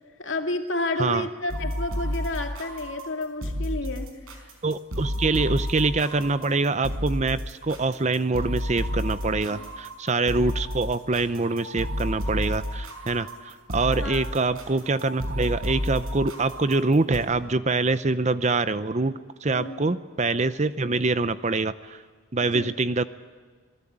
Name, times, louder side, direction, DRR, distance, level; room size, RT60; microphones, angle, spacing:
voice 1, 0.2-4.4 5.2-5.4 9.5-9.7 14.0-14.3 19.5-19.8 22.5-22.7, left 2 dB, 55° left, 4 dB, 2.4 m, -31 dB
sound 1, 1.5-17.2, equal, 75° right, 4.9 m, -31 dB
voice 2, 4.6-22.0 22.3-23.0, right 3 dB, 30° right, 14 dB, 0.6 m, -25 dB
27.0 x 19.0 x 8.8 m, 1.5 s
head